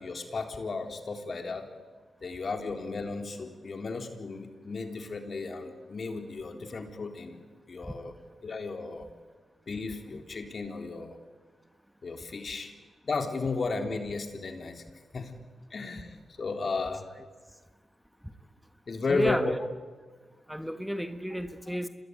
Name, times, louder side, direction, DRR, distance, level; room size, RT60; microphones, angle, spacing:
voice 1, 0.0-1.7 2.2-7.4 7.7-8.1 8.4-9.1 9.7-11.2 12.0-12.7 13.0-14.8 15.1-15.4 15.7-17.1 18.9-19.5, left 4 dB, 55° left, 6 dB, 3.7 m, -34 dB
voice 2, 19.1-19.6 20.5-21.9, equal, ahead, 9 dB, 1.6 m, -32 dB
26.5 x 20.0 x 9.4 m, 1.4 s
supercardioid pair, 45°, 0 cm